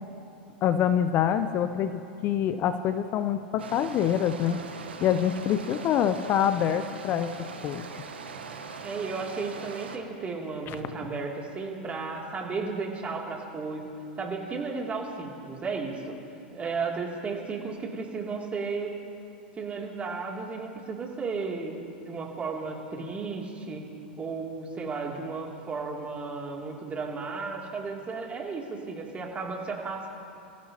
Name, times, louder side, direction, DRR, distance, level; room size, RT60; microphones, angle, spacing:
voice 1, 0.6-4.6 5.0-7.9 10.7-10.8, left 9 dB, 40° left, 10 dB, 0.7 m, -26 dB
sound 1, 3.6-10.0, right 5 dB, 85° right, 1.4 m, -41 dB
voice 2, 8.8-13.9 14.2-16.2 16.5-19.0 19.5-21.8 22.1-23.9 24.2-30.2, right 4 dB, 25° right, -1 dB, 2.8 m, -34 dB
27.0 x 15.5 x 2.9 m, 2.6 s
hypercardioid pair, 100°, 6 cm